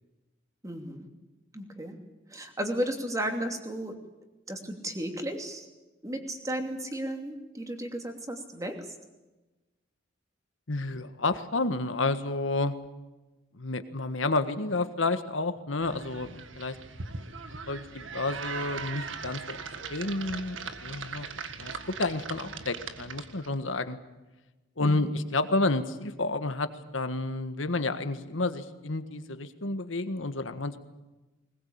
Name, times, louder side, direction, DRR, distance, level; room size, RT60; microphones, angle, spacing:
voice 1, 0.6-1.1 1.5-2.0 2.3-4.0 4.5-5.7 6.0-8.8 24.8-25.1, right 1 dB, 15° right, 4 dB, 2.9 m, -34 dB
voice 2, 10.7-12.7 13.5-16.8 17.7-19.6 19.9-21.3 21.6-21.7 22.0-24.0 24.8-30.8, left 2 dB, 85° left, 10 dB, 1.6 m, -30 dB
sound 1, 15.8-23.5, right 5 dB, 85° right, 1.8 m, -40 dB
20.5 x 20.5 x 8.7 m, 1.1 s
head